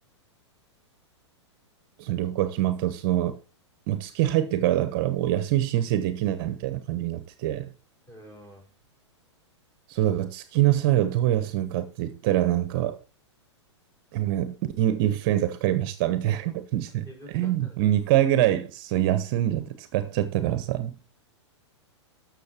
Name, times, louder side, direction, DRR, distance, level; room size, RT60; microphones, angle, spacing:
voice 1, 2.0-3.3 3.9-7.7 9.9-13.0 14.1-20.9, right 13 dB, 45° right, 1.1 m, -25 dB
voice 2, 8.1-8.7 17.1-17.8, equal, 15° left, 5.8 m, -47 dB
13.5 x 6.6 x 4.5 m
hypercardioid pair, 105°, 15 cm